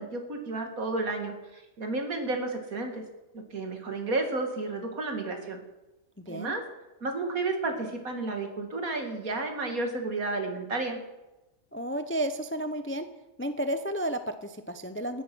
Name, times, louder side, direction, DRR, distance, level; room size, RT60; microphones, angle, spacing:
voice 1, 0.0-3.0 3.3-5.6 6.3-6.6 7.0-11.0, right 3 dB, 80° right, 4 dB, 2.6 m, -32 dB
voice 2, 11.7-13.1 13.4-15.2, right 1 dB, 15° left, 10 dB, 0.5 m, -32 dB
16.5 x 10.0 x 6.2 m, 1.0 s
omnidirectional pair, 1.5 m